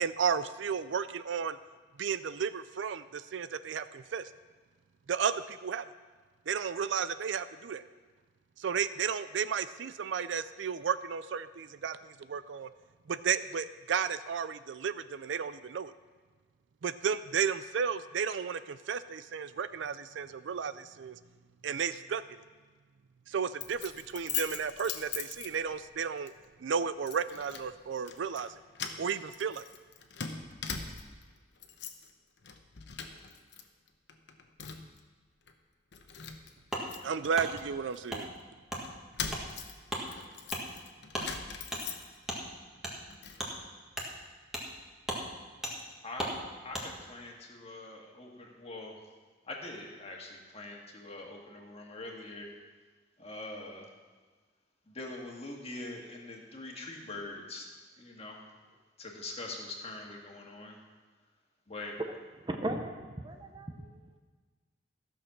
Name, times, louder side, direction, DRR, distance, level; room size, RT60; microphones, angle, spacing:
voice 1, 0.0-1.6 2.0-4.3 5.1-5.9 6.5-7.8 8.6-12.7 13.1-15.9 16.8-21.2 21.6-22.4 23.3-26.3 26.6-28.5 29.0-29.6 37.0-38.3, right 6 dB, 70° right, 14 dB, 0.4 m, -33 dB
Keys jangling, 23.6-25.9 26.3-26.5 27.1-27.7 28.0-28.5 28.7-31.2 31.6-32.1 32.4-33.6 33.9-35.0 35.5-35.6 35.9-38.3 38.8-42.4 42.8-43.4, left 7 dB, 65° left, 0.9 m, -41 dB
Wood, 36.7-36.9 37.3-37.5 38.1-38.2 38.7-38.8 39.3-39.4 39.9-40.0 40.5-40.6 41.1-41.3 41.7-41.8 42.3-42.4 42.8-42.9 43.4-43.5 43.9-44.1 44.5-44.7 45.0-45.2 45.6-45.7 46.2-46.3 46.7-46.9, equal, 5° right, 1.6 m, -36 dB
voice 2, 46.0-46.3 46.6-49.0 49.4-52.5 53.2-53.9 54.9-57.7 58.0-58.5 59.0-60.8 61.7-62.0, left 2 dB, 35° left, 0 dB, 1.7 m, -43 dB
voice 3, 62.5-63.9, right 1 dB, 25° right, 5 dB, 0.8 m, -37 dB
14.5 x 6.5 x 5.9 m, 1.4 s
head